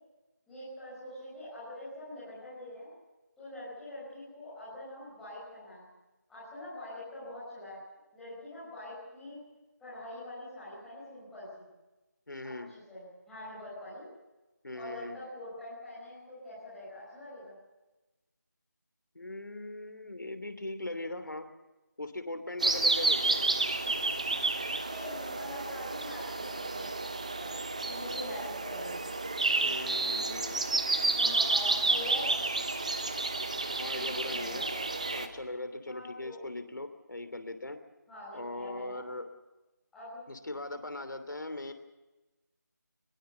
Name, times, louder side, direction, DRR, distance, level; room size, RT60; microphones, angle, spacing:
voice 1, 0.5-2.9 3.4-5.9 6.3-7.8 8.1-9.4 9.8-11.6 12.4-14.1 14.7-17.5 24.9-26.9 27.3-29.1 31.2-32.4 33.9-34.8 35.9-36.4 38.1-39.0 39.9-40.2, left 1 dB, ahead, -12 dB, 5.4 m, -44 dB
voice 2, 12.3-12.7 14.6-15.2 19.1-21.5 22.0-23.4 29.6-30.7 33.8-34.7 35.0-37.8 38.3-39.3 40.3-41.7, left 2 dB, 85° left, 9 dB, 3.0 m, -40 dB
sound 1, 22.6-35.3, right 3 dB, 20° right, 0.9 m, -30 dB
22.0 x 21.5 x 6.8 m, 1.1 s
figure-of-eight pair, 175°, 10 cm